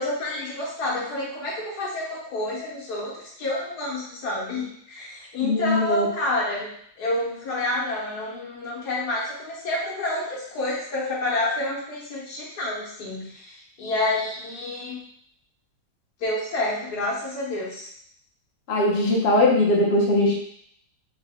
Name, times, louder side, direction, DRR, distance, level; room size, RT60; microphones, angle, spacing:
voice 1, 0.0-6.7 7.0-15.0 16.2-17.9, left 2 dB, 70° left, -5 dB, 1.5 m, -29 dB
voice 2, 5.4-6.1 18.7-20.3, left 2 dB, 55° left, -3 dB, 0.7 m, -20 dB
3.8 x 2.1 x 3.4 m, 0.67 s
omnidirectional pair, 1.8 m